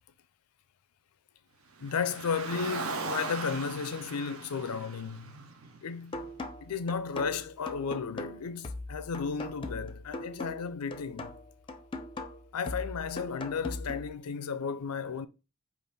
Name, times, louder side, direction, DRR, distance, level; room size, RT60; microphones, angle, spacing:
voice 1, 1.8-5.5 5.8-6.3 6.6-11.4 12.5-15.3, left 6 dB, 90° left, 0.5 m, -34 dB
Car, 1.8-6.2, right 4 dB, 70° right, 0.7 m, -39 dB
sound 1, 6.1-14.1, left 2 dB, 20° left, 0.4 m, -40 dB
5.2 x 2.5 x 4.1 m
head